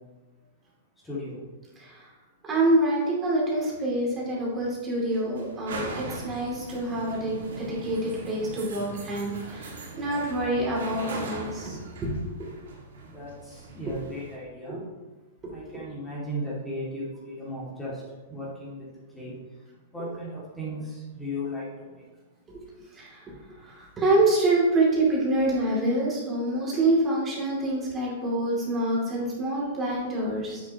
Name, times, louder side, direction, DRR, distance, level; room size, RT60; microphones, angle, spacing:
voice 1, 1.0-1.4 13.1-14.8 15.5-18.0 18.3-18.9 19.1-19.3 19.9-22.0, equal, 10° left, -7 dB, 2.2 m, -36 dB
voice 2, 1.8-2.1 2.4-12.1 14.7-14.8 22.5-22.6 22.9-23.3 23.6-30.6, right 1 dB, 20° right, -5 dB, 2.5 m, -26 dB
sound 1, 3.7-14.4, right 2 dB, 75° right, 1.9 m, -40 dB
8.1 x 6.7 x 2.9 m, 1.2 s
hypercardioid pair, 130°, 0 cm